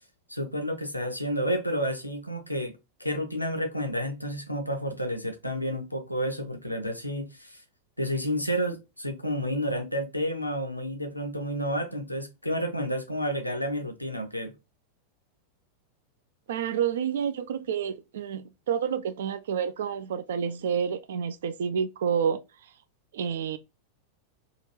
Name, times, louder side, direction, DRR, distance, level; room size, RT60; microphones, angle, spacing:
voice 1, 0.3-2.7 3.0-7.6 8.0-14.5, equal, 85° left, 0.6 m, -30 dB
voice 2, 16.5-22.4 23.1-23.6, right 7 dB, 60° right, 0.3 m, -29 dB
2.9 x 2.4 x 3.0 m
figure-of-eight pair, 90°, 0 cm